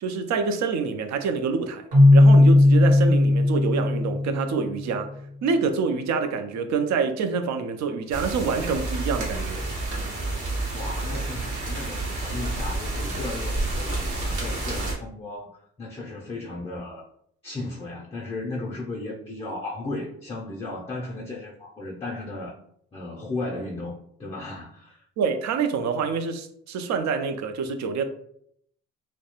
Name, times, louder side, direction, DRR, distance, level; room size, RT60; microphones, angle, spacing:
voice 1, 0.0-1.8 2.1-5.1 5.4-9.7 25.2-28.1, right 5 dB, 65° right, 7 dB, 0.5 m, -26 dB
Keyboard (musical), 1.9-4.8, left 2 dB, 50° right, 0.9 m, -16 dB
sound 1, 8.1-14.9, right 2 dB, 85° right, 0.9 m, -29 dB
voice 2, 10.7-15.5 15.8-17.1 17.4-22.5 22.9-25.0, left 2 dB, 20° left, -2 dB, 0.4 m, -35 dB
2.3 x 2.1 x 2.9 m, 0.69 s
cardioid pair, 90°, 30 cm